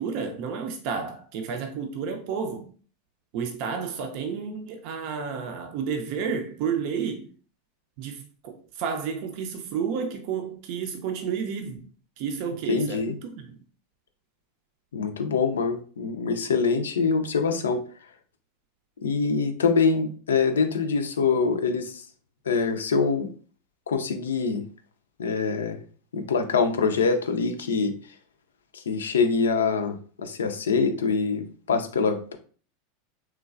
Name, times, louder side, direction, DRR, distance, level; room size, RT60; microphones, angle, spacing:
voice 1, 0.0-2.7 3.3-7.3 8.0-11.8 12.2-13.6, right 6 dB, 55° right, 0.5 m, -31 dB
voice 2, 12.7-13.1 14.9-17.8 19.0-22.0 22.5-23.3 23.9-24.6 25.2-25.8 26.1-27.9 28.7-32.4, left 5 dB, 85° left, 0.4 m, -24 dB
3.1 x 2.2 x 2.4 m
hypercardioid pair, 95°, 0 cm